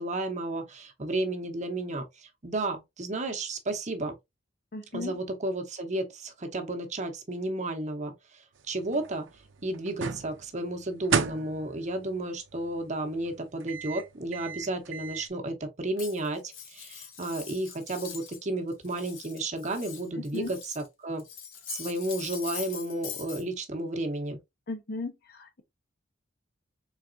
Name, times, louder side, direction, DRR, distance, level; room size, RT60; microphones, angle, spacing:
voice 1, 0.0-4.1 4.9-9.3 9.6-21.2 21.7-24.4, right 2 dB, 40° right, 0.9 m, -33 dB
voice 2, 4.7-5.2 20.1-20.5 24.7-25.6, left 3 dB, 50° left, 0.8 m, -36 dB
sound 1, 8.5-15.3, right 6 dB, 70° right, 0.6 m, -36 dB
Cutlery silverware, 16.0-18.4 18.7-20.9 21.2-23.4, left 8 dB, 85° left, 0.9 m, -42 dB
4.0 x 3.5 x 2.6 m
head